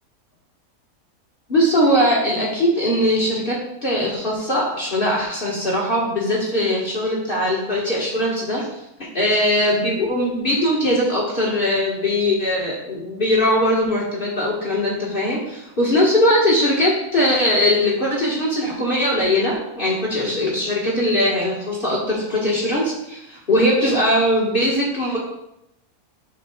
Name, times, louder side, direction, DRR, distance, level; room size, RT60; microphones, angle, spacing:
voice 1, 1.5-3.6 3.8-8.7 9.0-25.2, left 1 dB, 35° left, -5 dB, 1.5 m, -20 dB
9.0 x 5.6 x 2.3 m, 0.85 s
omnidirectional pair, 1.6 m